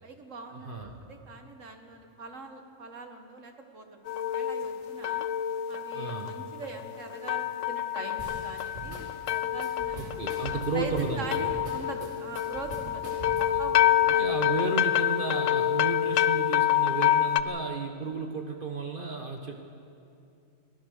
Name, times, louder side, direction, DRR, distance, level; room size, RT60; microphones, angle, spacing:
voice 1, 0.0-5.3 5.7-10.1 10.5-14.3, right 3 dB, 80° right, 5 dB, 2.1 m, -42 dB
voice 2, 0.5-1.0 5.9-6.4 9.9-11.5 13.2-13.6 14.0-19.6, right 4 dB, 45° right, 3 dB, 1.4 m, -33 dB
sound 1, 4.1-17.4, left 11 dB, 80° left, 1.0 m, -27 dB
sound 2, 8.2-13.7, right 2 dB, 60° right, 4.0 m, -42 dB
25.0 x 17.5 x 6.6 m, 2.6 s
omnidirectional pair, 1.3 m